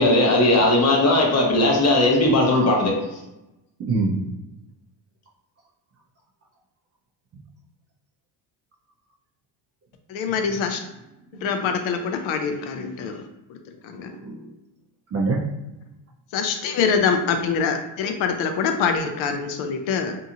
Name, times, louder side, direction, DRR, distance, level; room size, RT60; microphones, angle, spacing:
voice 1, 0.0-2.9, left 1 dB, 30° left, 0 dB, 0.8 m, -18 dB
voice 2, 3.8-4.3 10.4-10.6 11.4-11.8 12.8-12.9 13.9-14.5 15.1-15.4, right 3 dB, 30° right, -1 dB, 0.5 m, -27 dB
voice 3, 10.1-10.8 11.4-13.6 13.8-14.2 16.3-20.2, left 6 dB, 70° left, 5 dB, 0.6 m, -24 dB
2.7 x 2.4 x 2.7 m, 0.95 s
cardioid pair, 105°, 50 cm